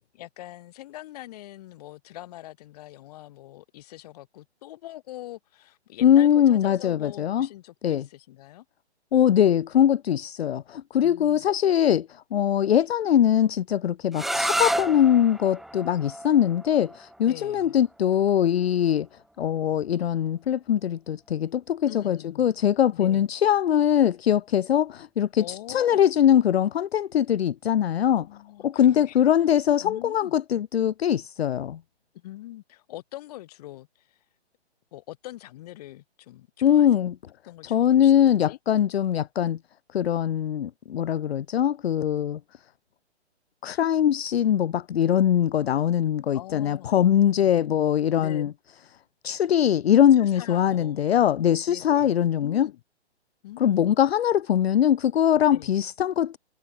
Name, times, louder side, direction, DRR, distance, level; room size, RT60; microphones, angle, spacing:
voice 1, 0.2-8.6 11.0-11.5 17.3-17.8 21.9-22.5 22.9-23.3 25.4-26.0 28.2-29.2 29.8-30.3 32.1-34.2 34.9-37.1 37.4-38.6 46.0-46.9 48.2-48.4 50.2-51.3 51.7-52.1 52.4-52.8 53.4-53.9 55.5-55.7, left 15 dB, 35° left, 2.3 m, -43 dB
voice 2, 6.0-7.5 7.8-8.1 9.1-19.1 19.4-28.3 28.6-31.8 36.6-37.2 37.7-39.6 39.9-42.4 43.6-48.5 49.2-52.7 53.6-56.4, left 10 dB, 65° left, 0.5 m, -22 dB
sound 1, 14.1-19.8, right 1 dB, ahead, 0.6 m, -32 dB
figure-of-eight pair, 130°, 33 cm